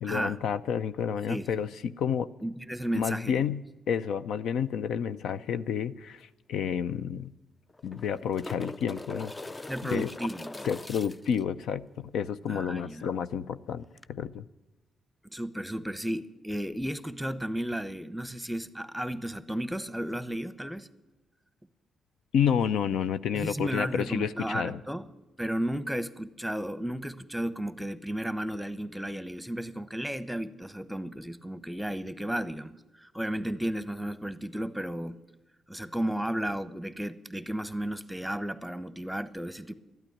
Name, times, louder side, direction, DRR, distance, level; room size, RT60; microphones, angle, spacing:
voice 1, 0.0-2.3 2.9-3.6 3.9-7.3 7.8-9.3 9.8-10.1 10.7-13.8 14.1-14.4 22.3-24.8, left 8 dB, 80° left, 13 dB, 0.4 m, -30 dB
voice 2, 2.4-3.4 9.7-10.7 12.5-13.1 15.2-20.9 23.3-25.1 25.4-35.2 35.7-39.7, right 1 dB, 5° right, 14 dB, 1.0 m, -33 dB
sound 1, 6.2-6.3 6.6-6.7 7.7-11.4 14.0-14.1, left 2 dB, 25° left, 0.4 m, -41 dB
12.5 x 9.0 x 9.8 m, 1.0 s
supercardioid pair, 60°, 0 cm